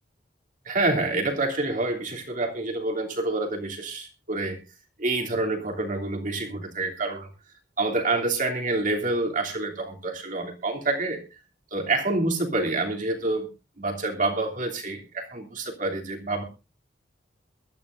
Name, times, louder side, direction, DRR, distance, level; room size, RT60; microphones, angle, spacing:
voice 1, 0.6-4.6 5.0-7.3 7.8-11.2 11.7-13.5 13.8-16.4, right 2 dB, 45° right, 2 dB, 3.1 m, -27 dB
22.5 x 12.5 x 2.6 m, 0.28 s
head